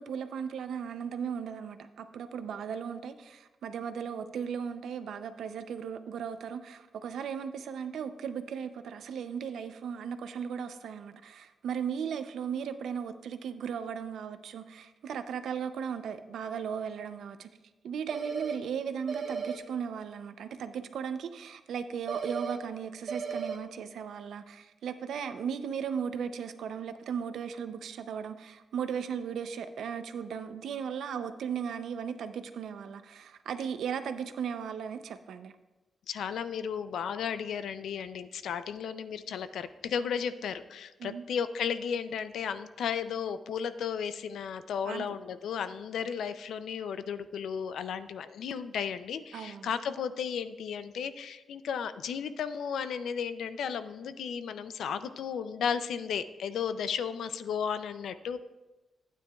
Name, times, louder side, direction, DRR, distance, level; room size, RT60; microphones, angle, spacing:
voice 1, 0.0-17.5 17.8-35.5 41.0-41.2 44.8-45.2 49.3-49.7, right 7 dB, 85° right, 10 dB, 0.5 m, -36 dB
sound 1, 18.1-18.6 19.1-19.6 22.1-22.6 23.1-23.6, right 5 dB, 65° right, 1.0 m, -34 dB
voice 2, 36.1-58.4, left 7 dB, 85° left, 12 dB, 0.4 m, -34 dB
12.0 x 9.3 x 2.3 m, 1.1 s
cardioid pair, 110°, 0 cm